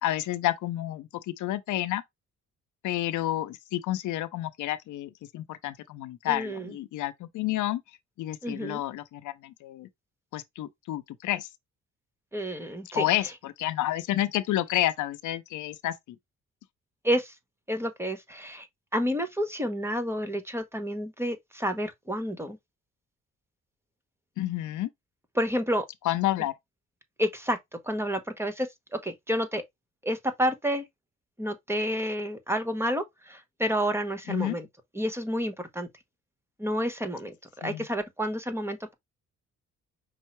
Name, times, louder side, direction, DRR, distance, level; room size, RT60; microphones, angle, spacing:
voice 1, 0.0-2.0 2.8-7.8 8.2-9.9 10.3-11.5 12.9-15.9 24.4-24.9 26.0-26.5 34.3-34.5 37.6-37.8, left 14 dB, 80° left, 0.6 m, -30 dB
voice 2, 6.3-6.7 8.4-8.8 12.3-13.1 17.0-17.3 17.7-18.7 18.9-22.6 25.3-25.9 27.2-27.6 27.9-29.6 30.0-30.8 31.4-34.7 34.9-35.9 36.6-37.3 37.6-38.9, equal, 10° right, 1.0 m, -29 dB
5.4 x 2.0 x 4.5 m
cardioid pair, 90°, 30 cm